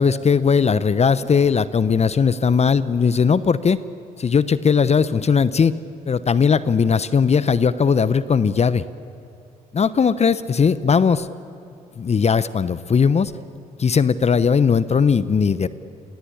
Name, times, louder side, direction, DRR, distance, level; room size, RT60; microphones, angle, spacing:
voice 1, 0.0-3.8 4.2-5.8 6.1-8.8 9.7-11.3 12.0-13.3 13.8-15.7, left 6 dB, 35° left, 16 dB, 1.0 m, -18 dB
28.0 x 23.0 x 8.7 m, 2.4 s
hypercardioid pair, 50°, 20 cm